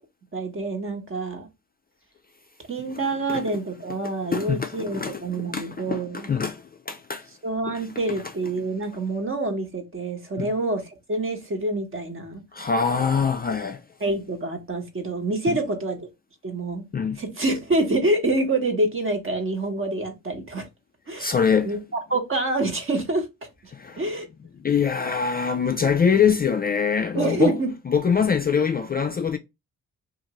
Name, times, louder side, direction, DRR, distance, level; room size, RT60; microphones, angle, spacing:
voice 1, 0.3-1.5 2.7-6.3 7.4-10.8 11.1-12.4 14.0-16.0 16.4-16.8 17.2-20.7 21.1-21.3 21.6-21.8 22.1-23.3 23.6-24.3 27.1-27.7, right 2 dB, 35° right, 1.0 m, -26 dB
voice 2, 4.3-7.3 7.7-7.8 10.4-10.5 12.5-13.8 15.5-15.6 16.9-17.2 21.2-21.7 23.7-24.0 24.6-27.5 27.9-29.4, left 6 dB, 30° left, 0.4 m, -24 dB
2.6 x 2.5 x 2.9 m
supercardioid pair, 55°, 35 cm